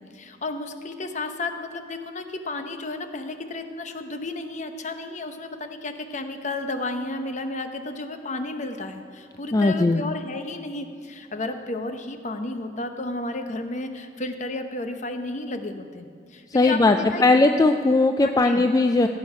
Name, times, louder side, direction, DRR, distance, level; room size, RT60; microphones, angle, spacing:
voice 1, 0.0-17.2 18.2-18.6, left 2 dB, 45° left, 7 dB, 0.8 m, -32 dB
voice 2, 9.5-10.0 16.5-19.1, left 2 dB, 20° left, 6 dB, 0.3 m, -19 dB
15.5 x 7.9 x 5.6 m, 2.3 s
head